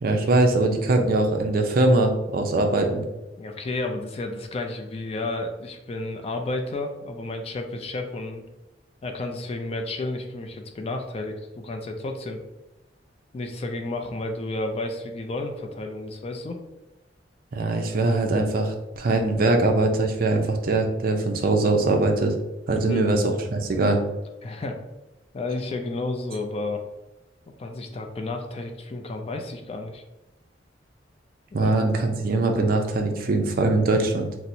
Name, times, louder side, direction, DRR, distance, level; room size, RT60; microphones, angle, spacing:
voice 1, 0.0-3.0 17.5-22.3 22.7-24.0 31.5-34.3, right 2 dB, 50° right, 4 dB, 0.4 m, -22 dB
voice 2, 3.4-8.4 9.0-12.4 13.3-16.6 22.8-23.1 24.4-24.8 25.3-26.8 27.6-30.0 31.6-31.7, left 2 dB, 35° left, 4 dB, 0.3 m, -31 dB
4.2 x 2.0 x 2.6 m, 0.98 s
head